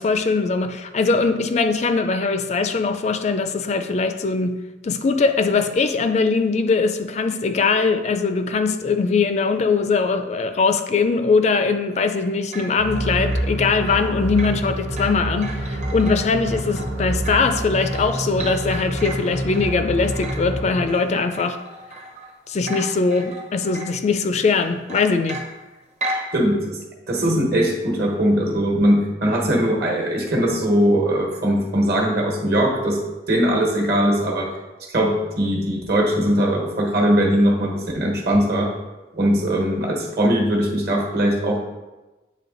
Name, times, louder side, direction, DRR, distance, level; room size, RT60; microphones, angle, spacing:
voice 1, 0.0-4.6 4.8-21.6 22.5-25.4, left 4 dB, 40° left, 9 dB, 0.3 m, -21 dB
sound 1, 12.2-22.4 22.6-24.1 24.5-26.3, right 1 dB, 40° right, 0.8 m, -35 dB
sound 2, 12.8-21.0, right 1 dB, 80° right, 1.3 m, -27 dB
voice 2, 26.3-26.8 27.1-33.0 33.3-34.5 34.9-38.7 39.1-41.6, equal, 60° right, 0 dB, 1.3 m, -20 dB
8.4 x 3.2 x 3.9 m, 1.1 s
head